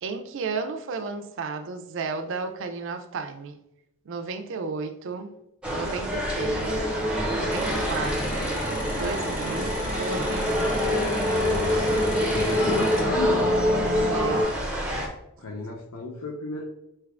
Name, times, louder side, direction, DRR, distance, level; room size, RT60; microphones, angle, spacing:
voice 1, 0.0-3.6 4.1-5.3 5.7-6.8 7.4-8.5 8.9-11.1 14.1-14.5, right 4 dB, 60° right, 0.4 m, -33 dB
sound 1, 5.6-15.1, equal, 5° right, 0.5 m, -29 dB
sound 2, 6.4-14.4, left 1 dB, 20° left, 0.9 m, -27 dB
sound 3, 7.5-13.0, left 1 dB, 35° left, 1.2 m, -36 dB
voice 2, 12.3-13.5 15.4-16.6, left 3 dB, 85° left, 0.6 m, -33 dB
4.4 x 3.3 x 2.4 m
head